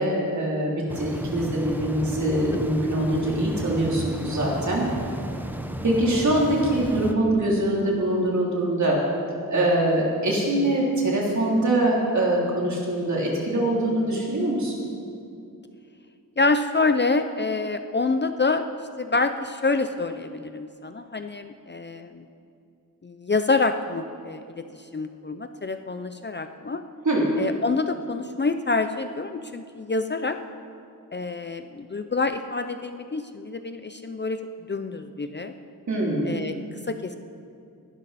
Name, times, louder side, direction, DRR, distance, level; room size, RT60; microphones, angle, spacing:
voice 1, 0.0-4.9 5.8-9.0 9.5-14.7 27.1-27.3 35.9-36.3, right 1 dB, 50° right, -3 dB, 3.4 m, -23 dB
sound 1, 0.9-7.1, right 1 dB, 5° right, 0.8 m, -34 dB
voice 2, 16.4-18.6 19.0-22.3 23.0-26.8 27.4-30.4 31.1-35.5 36.2-36.5 36.9-37.2, left 3 dB, 30° left, 8 dB, 0.5 m, -27 dB
20.0 x 12.0 x 4.2 m, 2.5 s
wide cardioid pair, 135°, 36 cm